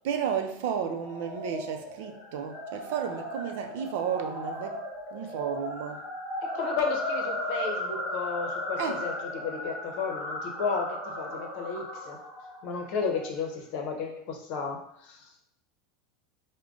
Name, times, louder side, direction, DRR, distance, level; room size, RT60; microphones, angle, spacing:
voice 1, 0.0-4.8 5.1-6.0 8.8-9.1, right 7 dB, 70° right, 0.5 m, -32 dB
sound 1, 0.9-13.3, left 1 dB, 5° left, 0.7 m, -36 dB
voice 2, 6.4-12.2 12.6-15.4, left 5 dB, 55° left, 0.8 m, -33 dB
4.9 x 2.2 x 3.7 m
supercardioid pair, 155°, 0 cm